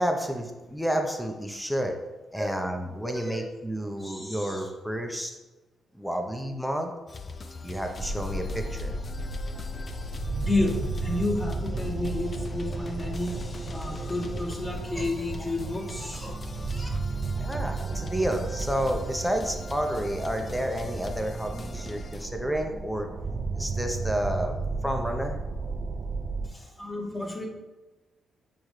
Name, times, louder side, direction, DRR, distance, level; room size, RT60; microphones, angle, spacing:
voice 1, 0.0-2.0 2.3-5.4 5.9-6.9 7.6-8.9 17.4-23.1 23.6-24.6 24.8-25.4, equal, ahead, 4 dB, 0.8 m, -30 dB
voice 2, 3.1-3.4 4.0-4.7 10.4-16.3 16.7-16.9 26.4-27.5, left 2 dB, 25° left, -2 dB, 1.9 m, -31 dB
sound 1, 7.1-22.3, left 4 dB, 40° left, 0.4 m, -42 dB
sound 2, 8.0-26.5, right 3 dB, 50° right, 0.5 m, -33 dB
8.3 x 3.6 x 3.2 m, 1.1 s
supercardioid pair, 60°, 0 cm